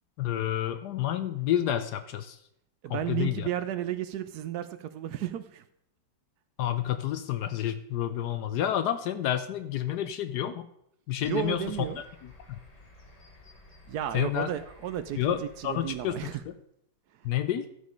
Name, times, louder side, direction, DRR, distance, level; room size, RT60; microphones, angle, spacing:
voice 1, 0.2-2.4 2.9-3.5 6.6-10.7 11.1-11.9 12.5-12.6 14.1-14.5 15.1-16.5 17.2-17.7, left 11 dB, 70° left, 11 dB, 1.0 m, -29 dB
voice 2, 2.8-5.6 11.2-12.0 13.9-16.4, right 11 dB, 70° right, 11 dB, 1.0 m, -33 dB
sound 1, 11.2-16.4, left 2 dB, 25° left, 1.2 m, -54 dB
12.5 x 5.2 x 5.2 m, 0.74 s
omnidirectional pair, 2.0 m